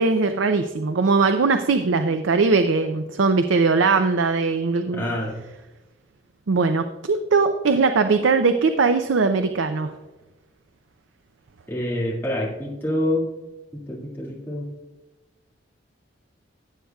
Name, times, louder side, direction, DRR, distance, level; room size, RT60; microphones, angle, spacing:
voice 1, 0.0-5.1 6.5-9.9, right 4 dB, 85° right, 8 dB, 0.5 m, -20 dB
voice 2, 4.9-5.4 11.7-13.3 13.7-14.7, left 1 dB, 10° left, -5 dB, 2.1 m, -26 dB
15.5 x 8.0 x 2.3 m, 1.1 s
head